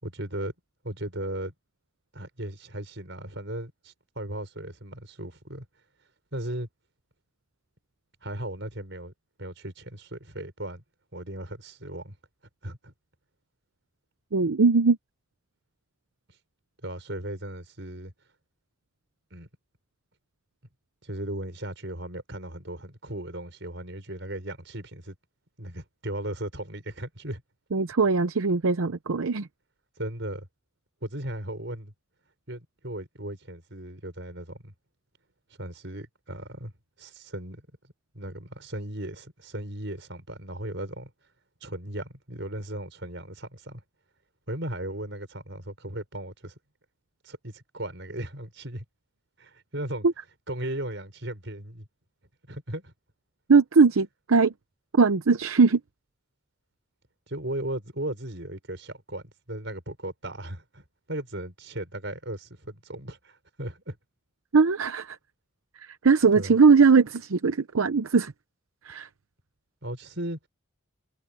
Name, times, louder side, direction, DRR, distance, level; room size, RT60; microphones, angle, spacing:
voice 1, 0.0-0.5 0.8-1.5 2.1-5.7 6.3-6.7 8.2-9.1 9.4-10.8 11.1-12.2 12.6-12.9 16.8-18.1 19.3-19.5 21.0-25.1 25.6-27.4 30.0-30.5 31.0-31.9 32.5-34.7 35.6-36.7 37.0-37.7 38.1-41.1 41.6-43.8 44.5-46.6 47.2-48.8 49.4-50.1 50.5-51.9 52.5-52.9 57.3-64.0 66.3-66.6 69.8-70.4, right 1 dB, 60° right, 6.0 m, -36 dB
voice 2, 14.3-15.0 27.7-29.5 50.0-50.1 53.5-54.5 54.9-55.8 64.5-65.2 65.8-68.3 68.9-69.1, right 4 dB, 80° right, 0.7 m, -20 dB
head